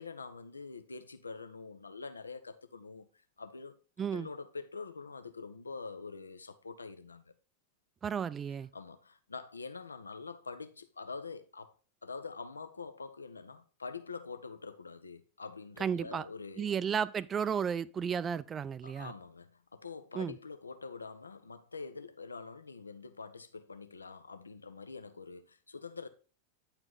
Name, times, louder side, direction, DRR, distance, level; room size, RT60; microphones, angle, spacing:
voice 1, 0.0-3.1 3.4-3.8 4.1-7.3 8.7-11.7 12.0-16.7 18.8-26.1, left 4 dB, 75° left, 0.7 m, -45 dB
voice 2, 8.0-8.7 15.8-16.3 16.6-19.1 20.1-20.4, right 7 dB, 20° right, 0.4 m, -33 dB
9.6 x 4.5 x 3.9 m
figure-of-eight pair, 90°, 0 cm